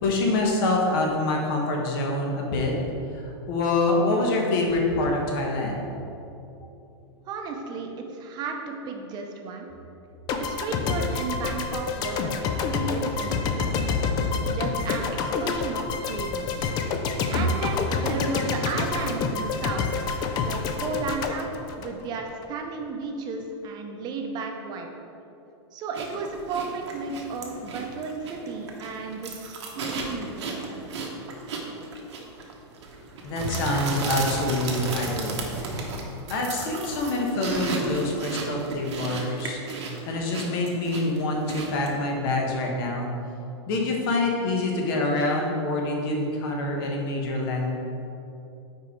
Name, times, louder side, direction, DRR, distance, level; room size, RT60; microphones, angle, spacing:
voice 1, 0.0-2.7 3.1-5.8 17.3-17.4 33.2-35.6 36.3-43.1 43.7-47.7, left 2 dB, 55° left, 0 dB, 1.2 m, -26 dB
voice 2, 7.3-9.7 10.3-13.9 14.5-16.7 17.3-19.9 20.4-21.5 21.8-24.9 25.7-31.1, right 4 dB, 30° right, 2 dB, 0.7 m, -34 dB
sound 1, 10.3-22.5, left 5 dB, 30° left, 0.4 m, -28 dB
sound 2, 25.9-42.0, right 3 dB, 80° right, 1.0 m, -34 dB
5.1 x 4.6 x 4.5 m, 2.8 s
hypercardioid pair, 140°, 14 cm